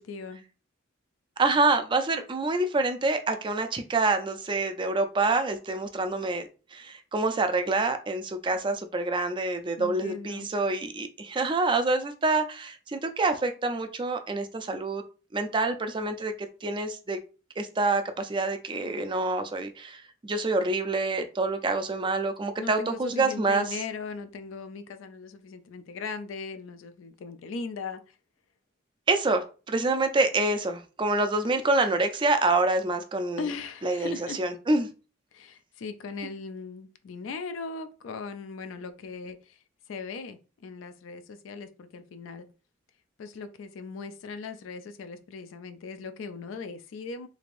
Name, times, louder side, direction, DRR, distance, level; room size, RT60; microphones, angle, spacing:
voice 1, 0.1-0.4 9.8-10.5 22.6-28.2 33.4-34.4 35.3-39.6 39.9-42.5 43.2-47.3, left 4 dB, 70° left, 0.4 m, -38 dB
voice 2, 1.4-15.0 15.3-17.2 17.6-23.8 29.1-33.4 33.8-34.9, right 3 dB, 25° right, 0.4 m, -27 dB
3.4 x 3.2 x 2.5 m
head